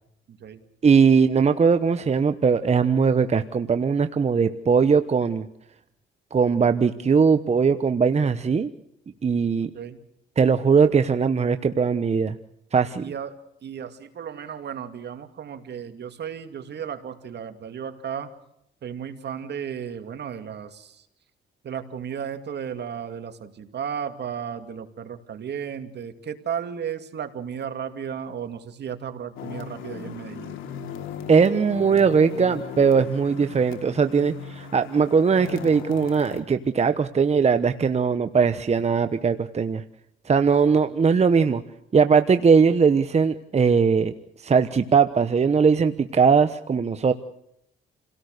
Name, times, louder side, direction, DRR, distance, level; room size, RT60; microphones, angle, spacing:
voice 1, 0.3-0.6 9.6-10.0 13.0-18.3 18.8-21.1 21.6-30.6, right 8 dB, 60° right, 8 dB, 2.4 m, -34 dB
voice 2, 0.8-5.5 6.3-8.7 9.2-9.7 10.4-12.4 12.7-13.0 31.3-39.8 40.3-41.6 41.9-44.1 44.4-47.1, right 5 dB, 35° right, 10 dB, 1.1 m, -20 dB
sound 1, 29.4-36.4, left 7 dB, 85° left, 3.0 m, -37 dB
29.0 x 18.0 x 6.7 m, 0.76 s
cardioid pair, 90°, 20 cm